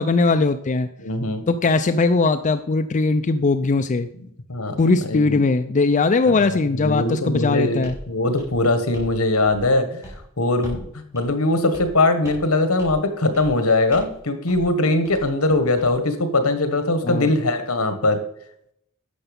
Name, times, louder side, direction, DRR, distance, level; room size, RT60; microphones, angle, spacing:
voice 1, 0.0-0.9 1.5-4.1 4.8-8.0 17.0-17.3, left 3 dB, 35° left, 9 dB, 0.4 m, -20 dB
voice 2, 1.0-1.4 4.5-5.4 6.2-10.1 10.4-18.2, left 2 dB, 75° left, 9 dB, 1.6 m, -21 dB
sound 1, 7.8-8.0 8.4-9.2 9.4-9.8 10.0-10.2 10.6-10.9 11.1-11.3 11.7-12.0 12.2-12.5 12.8-13.0 13.3-13.6 13.9-14.2 14.5-14.7 15.0-15.9, equal, 15° right, 4.6 m, -39 dB
11.5 x 7.1 x 5.4 m, 0.71 s
head